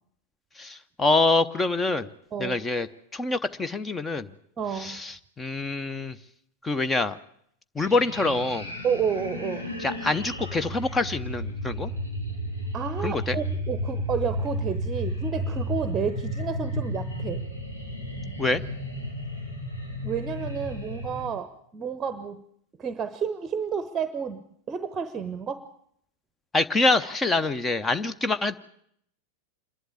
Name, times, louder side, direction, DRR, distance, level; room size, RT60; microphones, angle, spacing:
voice 1, 0.6-2.1 2.4-2.9 3.1-4.3 4.7-6.2 6.6-7.2 7.7-8.7 9.8-11.9 13.0-13.4 18.4-18.6 26.5-28.6, left 3 dB, 15° left, 13 dB, 0.8 m, -25 dB
voice 2, 4.6-5.0 8.8-9.7 12.7-17.5 20.0-22.4 22.8-25.7, right 6 dB, 20° right, 13 dB, 0.9 m, -31 dB
sound 1, 7.8-21.3, equal, 80° left, 3.3 m, -33 dB
27.0 x 11.5 x 8.6 m, 0.69 s
figure-of-eight pair, 90°, 0 cm